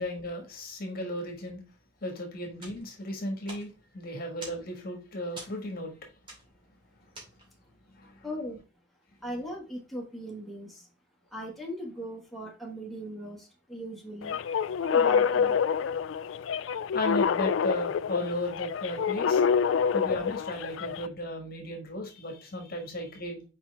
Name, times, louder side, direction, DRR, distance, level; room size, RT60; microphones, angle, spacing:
voice 1, 0.0-1.6 2.0-3.7 3.9-5.9 8.0-8.2 16.9-19.4 19.9-23.4, left 1 dB, 50° left, 1.6 m, -35 dB
sound 1, 2.5-7.8, right 2 dB, 25° right, 2.6 m, -49 dB
voice 2, 8.2-8.6 9.2-10.9 11.3-14.4 14.8-15.6, equal, ahead, 1.6 m, -39 dB
sound 2, 14.2-21.1, left 6 dB, 80° left, 0.3 m, -27 dB
5.9 x 4.8 x 3.3 m
head